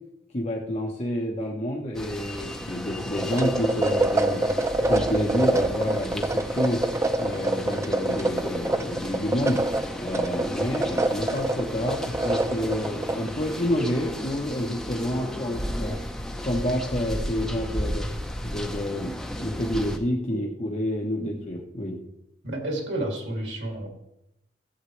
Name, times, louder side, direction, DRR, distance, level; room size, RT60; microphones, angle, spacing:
voice 1, 0.3-4.4 4.8-6.8 7.2-9.6 10.0-18.1 18.4-19.1 19.4-22.0, equal, 40° left, -2 dB, 1.1 m, -29 dB
sound 1, 1.9-20.0, left 1 dB, ahead, 0.9 m, -34 dB
sound 2, 3.1-13.3, right 2 dB, 15° right, 0.4 m, -26 dB
voice 2, 22.4-23.9, right 1 dB, 80° right, 1 dB, 2.8 m, -31 dB
14.5 x 8.2 x 3.3 m, 0.85 s
head